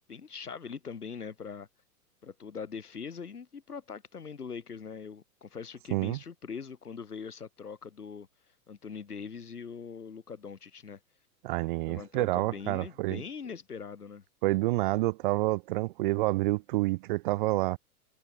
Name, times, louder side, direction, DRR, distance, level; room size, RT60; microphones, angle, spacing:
voice 1, 0.1-1.7 2.2-8.3 8.7-11.0 11.8-14.2, left 6 dB, 80° left, 5.2 m, -42 dB
voice 2, 11.4-13.2 14.4-17.8, right 20 dB, 35° right, 0.5 m, -28 dB
figure-of-eight pair, 100°, 45 cm